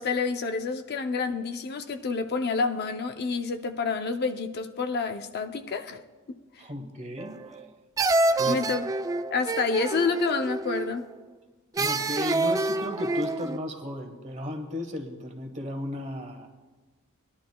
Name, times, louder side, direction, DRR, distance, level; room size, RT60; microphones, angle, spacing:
voice 1, 0.0-6.0 6.3-6.4 8.4-8.8 9.3-11.1, left 4 dB, 50° left, 0.6 m, -28 dB
voice 2, 6.6-7.6 8.4-8.6 11.8-16.5, left 1 dB, 35° right, 1.3 m, -35 dB
sound 1, 7.2-7.7 8.0-11.0 11.8-13.6, right 2 dB, 15° right, 0.3 m, -27 dB
19.0 x 11.5 x 2.3 m
head